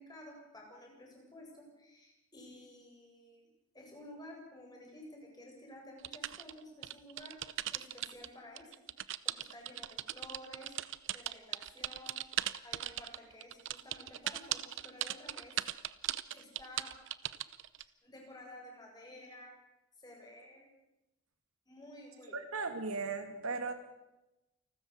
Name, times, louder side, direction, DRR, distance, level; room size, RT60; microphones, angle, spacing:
voice 1, 0.0-3.5 3.7-7.4 7.7-8.7 9.0-9.1 9.3-10.7 11.1-15.7 16.3-16.9 18.0-19.5 20.0-20.7 21.7-22.4, left 1 dB, 20° left, 0 dB, 7.3 m, -52 dB
sound 1, 6.0-8.3 8.6-17.8, right 12 dB, 60° right, 0.8 m, -38 dB
voice 2, 22.3-23.7, right 4 dB, 85° right, 7 dB, 2.6 m, -37 dB
28.5 x 13.5 x 8.2 m, 0.95 s
head